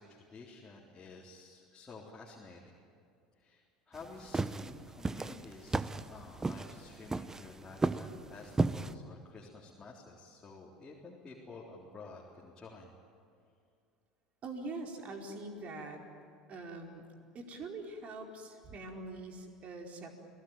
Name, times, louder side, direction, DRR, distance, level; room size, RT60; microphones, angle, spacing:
voice 1, 0.0-2.8 3.4-12.9, left 3 dB, 20° left, -3 dB, 3.9 m, -51 dB
sound 1, 3.9-8.9, right 3 dB, 15° right, 0.9 m, -34 dB
voice 2, 14.4-16.0 16.5-17.0 17.3-20.2, right 2 dB, 40° right, 2 dB, 4.6 m, -43 dB
29.5 x 18.5 x 9.2 m, 2.4 s
figure-of-eight pair, 70°, 3 cm